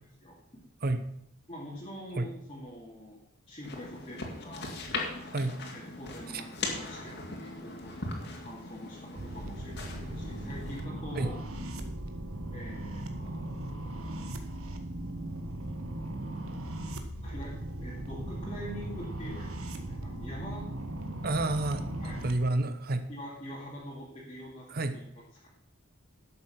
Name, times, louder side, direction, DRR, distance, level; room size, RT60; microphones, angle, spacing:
voice 1, 0.2-0.6 1.5-3.2 3.5-4.9 5.7-11.4 12.5-13.5 17.2-20.7 22.0-22.3 23.1-25.0 25.3-25.5, equal, 25° left, -6 dB, 2.2 m, -44 dB
sound 1, 3.6-10.8, left 3 dB, 50° left, 2.3 m, -39 dB
sound 2, 9.2-22.3, right 1 dB, 90° right, 1.4 m, -38 dB
voice 2, 21.2-21.9 22.2-23.1 24.7-25.0, right 2 dB, 45° right, 9 dB, 0.8 m, -29 dB
12.0 x 7.6 x 5.8 m, 0.79 s
head